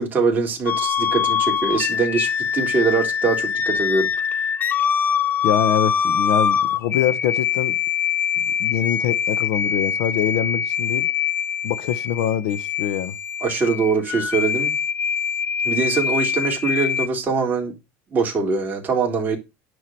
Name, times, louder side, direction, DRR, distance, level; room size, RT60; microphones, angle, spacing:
voice 1, 0.0-4.1 13.4-14.7 15.6-17.7 18.1-19.4, right 4 dB, 25° right, 3.9 m, -22 dB
sound 1, 0.7-17.1, left 7 dB, 30° left, 0.6 m, -23 dB
voice 2, 5.4-7.8 8.4-11.1 11.6-13.1, left 10 dB, 75° left, 1.2 m, -24 dB
10.5 x 5.0 x 7.8 m
cardioid pair, 140°, 7 cm